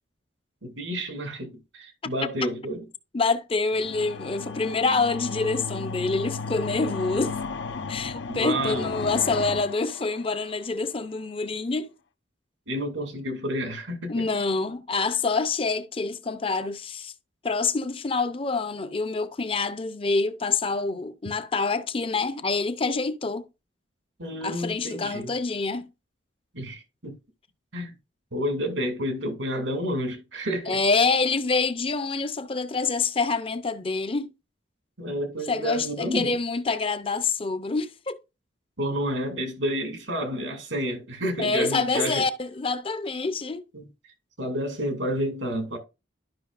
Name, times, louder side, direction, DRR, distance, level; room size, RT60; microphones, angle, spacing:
voice 1, 0.6-2.8 8.3-8.9 12.7-14.2 24.2-25.3 26.5-27.2 27.7-27.9 28.3-30.8 35.0-36.4 38.8-42.2 43.7-43.9 44.4-45.8, equal, 85° right, 2.4 m, -30 dB
voice 2, 3.1-7.4 7.9-11.9 14.1-17.1 17.4-23.5 24.4-25.9 30.7-34.3 35.5-38.2 41.4-43.6, left 4 dB, 30° left, 0.6 m, -26 dB
sound 1, 3.7-10.7, left 4 dB, 75° left, 0.7 m, -34 dB
12.0 x 5.7 x 2.4 m
head